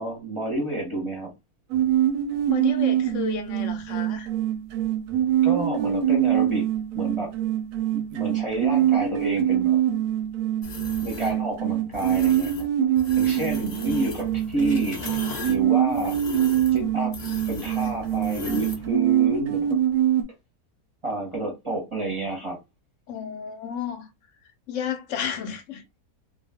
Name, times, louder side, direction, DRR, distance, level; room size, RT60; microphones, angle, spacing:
voice 1, 0.0-1.3 5.4-6.7 6.9-7.3 7.9-9.8 11.0-12.7 13.2-15.0 15.5-16.2 16.7-17.1 17.5-19.8 21.0-22.6, right 2 dB, 25° right, 0.7 m, -29 dB
sound 1, 1.7-20.2, right 11 dB, 70° right, 0.9 m, -24 dB
voice 2, 2.5-4.3 23.1-24.1 24.7-25.8, left 8 dB, 65° left, 0.9 m, -32 dB
sound 2, 10.6-11.3 11.9-12.7 13.0-18.9, left 3 dB, 90° left, 0.3 m, -38 dB
2.4 x 2.3 x 3.4 m
omnidirectional pair, 1.6 m